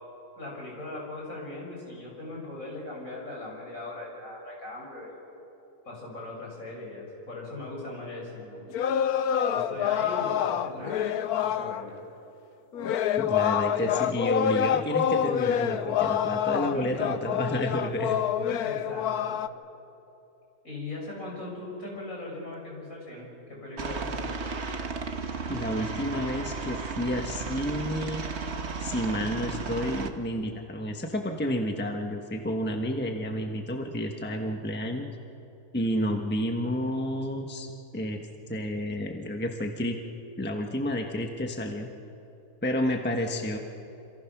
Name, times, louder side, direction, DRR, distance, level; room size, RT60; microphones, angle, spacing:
voice 1, 0.4-5.2 5.8-8.9 9.5-12.0 16.4-17.1 18.6-19.4 20.6-24.3, left 2 dB, 60° left, -3 dB, 7.0 m, -39 dB
sound 1, 8.7-11.8 12.7-19.5, left 9 dB, 80° left, 1.3 m, -27 dB
voice 2, 13.2-18.2 25.5-28.2 28.8-35.1 35.7-38.2 38.5-40.0 40.4-41.9 42.6-43.6, equal, 10° left, 3 dB, 1.2 m, -30 dB
Aircraft, 23.8-30.1, right 4 dB, 50° right, 1.5 m, -34 dB
27.0 x 27.0 x 6.1 m, 2.9 s
omnidirectional pair, 1.6 m